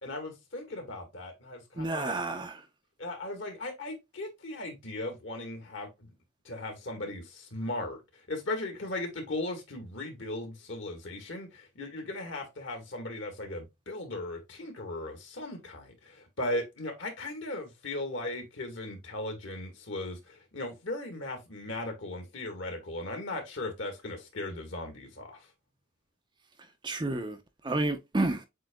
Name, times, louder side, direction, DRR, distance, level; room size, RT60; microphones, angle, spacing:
voice 1, 0.0-2.2 3.0-6.1 6.4-8.0 8.3-25.4, left 2 dB, 60° left, 1.7 m, -37 dB
voice 2, 1.8-2.6 26.8-28.5, right 2 dB, 20° right, 0.5 m, -30 dB
7.5 x 2.7 x 2.2 m
head